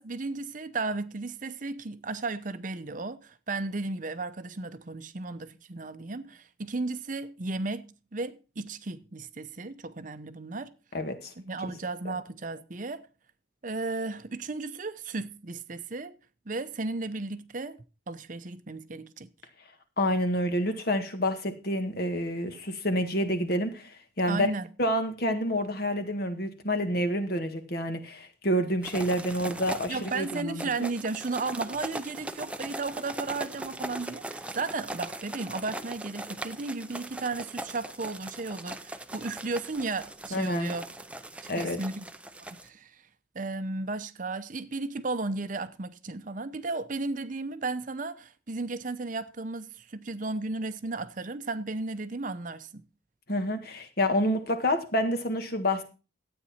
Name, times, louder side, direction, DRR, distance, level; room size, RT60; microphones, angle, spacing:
voice 1, 0.0-10.7 11.4-13.1 13.6-16.1 16.5-17.8 18.1-19.3 24.3-24.7 29.9-40.9 41.6-42.1 42.5-43.0 43.3-52.8, right 3 dB, 45° right, 0.7 m, -34 dB
voice 2, 10.9-11.3 12.0-12.1 20.0-24.5 24.8-30.6 40.3-40.7 41.5-41.8 53.3-55.8, equal, 50° left, 1.6 m, -28 dB
sound 1, 28.8-42.7, right 1 dB, 5° right, 0.6 m, -40 dB
12.5 x 8.9 x 4.3 m
head